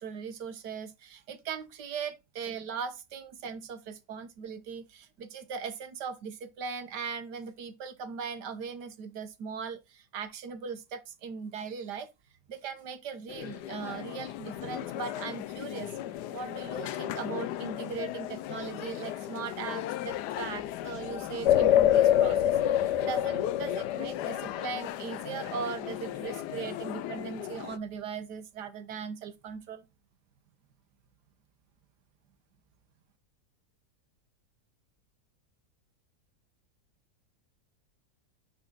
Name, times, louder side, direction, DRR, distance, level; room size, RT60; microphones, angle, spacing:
voice 1, 0.0-12.1 12.5-15.9 16.3-29.8, right 6 dB, 90° right, 1.7 m, -39 dB
sound 1, 13.3-27.8, left 12 dB, 85° left, 1.2 m, -37 dB
sound 2, 21.5-25.0, left 11 dB, 65° left, 0.7 m, -24 dB
9.7 x 4.2 x 3.8 m
omnidirectional pair, 1.7 m